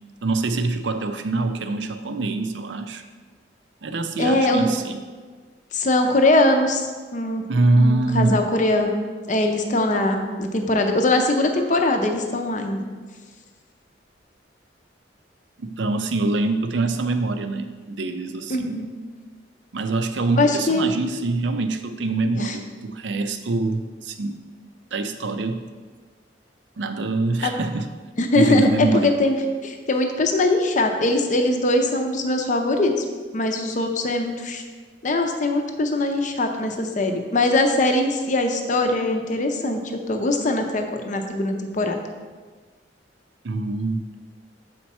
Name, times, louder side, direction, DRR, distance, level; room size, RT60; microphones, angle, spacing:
voice 1, 0.2-3.0 3.8-5.0 7.5-8.4 15.6-18.8 19.7-24.4 24.9-25.6 26.8-27.9 28.3-29.2 43.4-44.0, right 2 dB, 75° right, 8 dB, 0.5 m, -24 dB
voice 2, 4.2-4.7 5.7-6.8 7.1-7.5 7.7-12.9 18.5-18.9 20.4-21.0 22.4-22.6 27.4-27.5 28.2-28.7 29.0-29.4 29.6-33.0 33.3-34.6 35.0-39.8 40.1-41.9, left 2 dB, 45° left, 4 dB, 0.7 m, -21 dB
7.2 x 4.5 x 4.2 m, 1.5 s
head